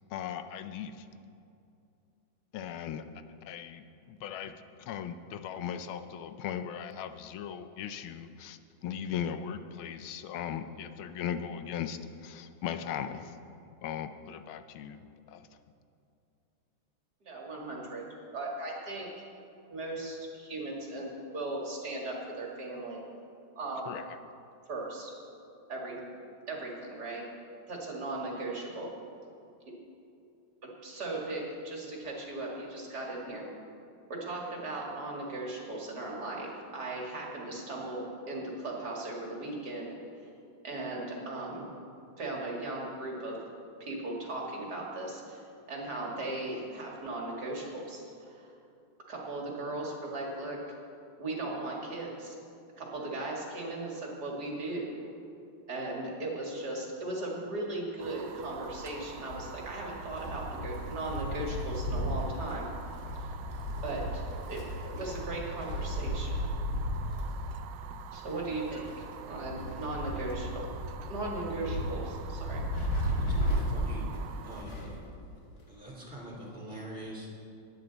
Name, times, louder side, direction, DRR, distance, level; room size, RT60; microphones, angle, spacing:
voice 1, 0.1-1.0 2.5-3.0 3.4-13.3 13.8-15.5 23.9-24.0, left 8 dB, 90° left, 10 dB, 1.5 m, -38 dB
voice 2, 17.2-18.1 18.3-19.2 19.7-23.0 23.6-24.0 24.7-25.1 25.7-26.0 26.5-27.3 27.7-28.9 30.6-33.5 34.1-39.9 40.1-40.3 40.6-41.7 42.2-43.4 43.8-48.6 49.1-50.6 51.2-52.3 52.8-55.0 55.7-62.7 63.1-63.4 63.8-64.2 64.5-66.5 68.1-70.7 71.1-72.6, right 2 dB, 55° right, -2 dB, 2.4 m, -37 dB
Fire, 58.0-74.7, right 9 dB, 75° right, 1.1 m, -47 dB
Wind, 58.4-75.0 75.3-75.4 76.4-76.5, equal, 50° left, 2.5 m, -35 dB
voice 3, 73.2-74.1 74.4-75.1 75.7-77.3, right 1 dB, 25° right, -4 dB, 3.4 m, -43 dB
20.0 x 9.3 x 4.0 m, 2.6 s
omnidirectional pair, 2.2 m